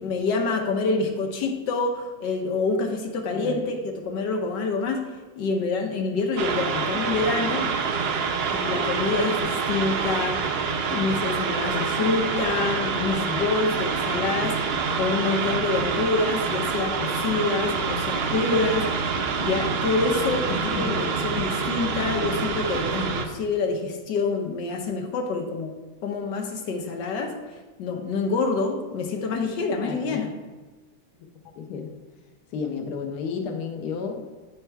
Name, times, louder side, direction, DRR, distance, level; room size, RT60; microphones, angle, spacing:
voice 1, 0.0-3.8 4.0-5.1 5.4-7.8 8.5-10.5 10.9-14.6 15.0-19.1 19.4-25.7 26.0-27.3 27.8-30.3, left 3 dB, 85° left, 2 dB, 1.6 m, -26 dB
voice 2, 3.3-3.7 20.5-20.9 29.8-30.2 31.6-31.9 32.5-34.3, left 5 dB, 70° left, 3 dB, 1.3 m, -32 dB
sound 1, 6.4-23.2, right 5 dB, 90° right, 0.5 m, -26 dB
8.9 x 4.4 x 4.6 m, 1.3 s
omnidirectional pair, 1.9 m